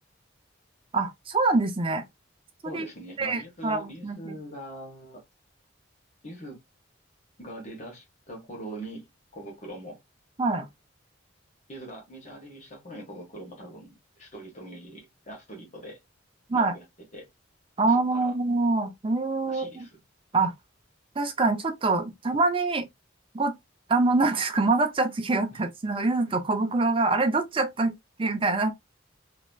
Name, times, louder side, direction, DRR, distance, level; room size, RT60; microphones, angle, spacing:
voice 1, 0.9-2.0 2.7-2.9 3.2-4.4 10.4-10.7 16.5-16.7 17.8-19.9 20.3-20.5 21.2-22.9 23.3-23.5 23.9-27.9 28.2-28.7, right 3 dB, 25° right, 0.5 m, -25 dB
voice 2, 2.6-5.2 6.2-6.6 7.4-10.0 11.7-16.0 16.5-16.8 17.1-17.3 17.9-18.3 19.5-20.0 25.5-25.6, right 1 dB, 35° left, 1.5 m, -42 dB
3.0 x 2.9 x 2.3 m
head